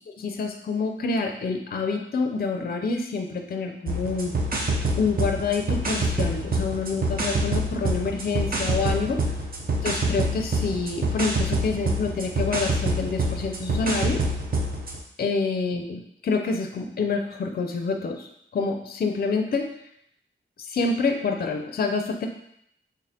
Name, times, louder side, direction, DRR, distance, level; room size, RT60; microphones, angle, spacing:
voice 1, 0.1-4.3 5.0-9.2 9.8-14.2 15.2-19.7 20.6-22.3, left 4 dB, 50° left, 4 dB, 0.4 m, -27 dB
sound 1, 3.9-15.0, right 1 dB, 45° right, 0.6 m, -26 dB
4.1 x 3.2 x 2.7 m, 0.73 s
wide cardioid pair, 135°, 21 cm